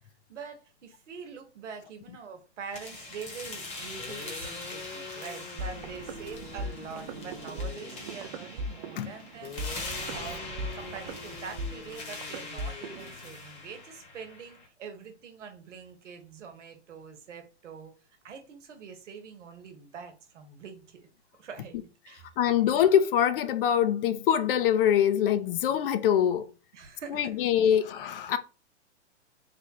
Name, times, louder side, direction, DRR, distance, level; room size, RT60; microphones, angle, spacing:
voice 1, 0.3-18.0 18.2-21.1 21.4-22.4 26.7-27.4, right 6 dB, 85° right, 1.0 m, -44 dB
sound 1, 2.7-14.7, left 3 dB, 20° left, 1.0 m, -42 dB
sound 2, 3.7-3.8 4.0-8.1 9.4-13.4, left 6 dB, 85° left, 0.7 m, -46 dB
sound 3, 5.6-13.1, right 2 dB, 40° right, 0.4 m, -39 dB
voice 2, 22.4-26.5 27.1-28.4, left 9 dB, 50° left, 0.5 m, -24 dB
3.3 x 2.3 x 4.0 m
hypercardioid pair, 135°, 35 cm